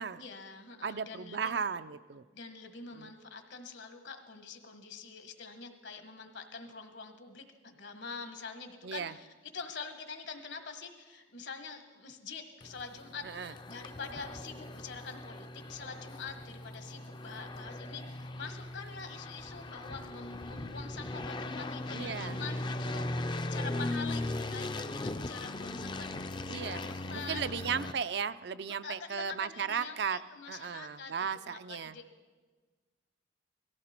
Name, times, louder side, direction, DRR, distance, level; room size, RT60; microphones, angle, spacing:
voice 1, 0.2-1.6 2.3-27.8 28.6-31.1 31.5-32.0, left 5 dB, 65° left, 7 dB, 1.5 m, -45 dB
voice 2, 0.8-2.2 2.9-3.1 8.8-9.1 13.2-13.5 21.9-22.4 26.5-26.8 27.1-30.2 30.5-32.0, right 6 dB, 60° right, 13 dB, 0.4 m, -35 dB
sound 1, 12.6-27.9, left 2 dB, 25° left, 0.4 m, -39 dB
19.0 x 15.0 x 4.4 m, 1.4 s
head